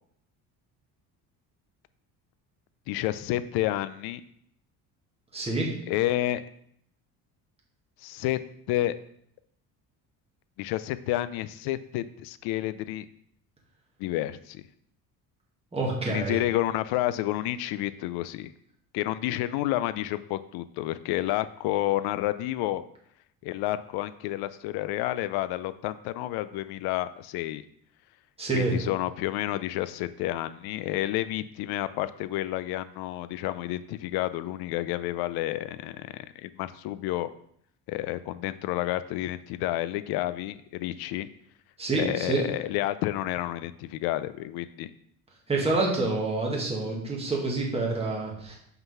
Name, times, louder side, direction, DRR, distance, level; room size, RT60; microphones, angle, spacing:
voice 1, 2.9-4.2 5.9-6.4 8.0-8.4 8.7-9.0 10.6-13.1 14.0-14.6 16.1-18.5 18.9-22.8 23.4-27.6 28.5-37.3 37.9-41.3 42.0-44.9, left 15 dB, 80° left, 14 dB, 0.5 m, -30 dB
voice 2, 5.3-5.7 15.7-16.4 28.4-28.7 41.8-42.4 45.5-48.6, right 3 dB, 15° right, -3 dB, 1.8 m, -27 dB
5.8 x 3.8 x 5.5 m, 0.71 s
cardioid pair, 115°, 37 cm